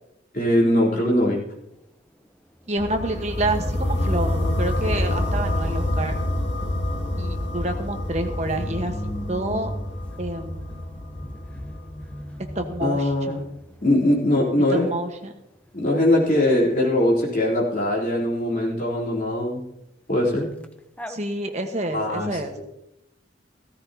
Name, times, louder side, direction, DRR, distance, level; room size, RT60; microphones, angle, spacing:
voice 1, 0.3-1.4 12.8-13.5 13.8-14.9 15.7-19.6 20.1-20.5 21.9-22.6, left 1 dB, 45° left, -5 dB, 3.6 m, -21 dB
voice 2, 2.7-6.1 7.2-8.9 9.3-9.7 10.2-10.8 12.4-13.4 14.7-15.3 21.1-22.5, right 1 dB, 35° right, 5 dB, 1.3 m, -28 dB
sound 1, 2.8-12.7, left 1 dB, 75° left, 2.2 m, -27 dB
sound 2, 5.4-14.4 20.6-20.7 21.0-21.2, equal, 5° left, 0.7 m, -39 dB
15.5 x 14.0 x 2.8 m, 0.86 s
head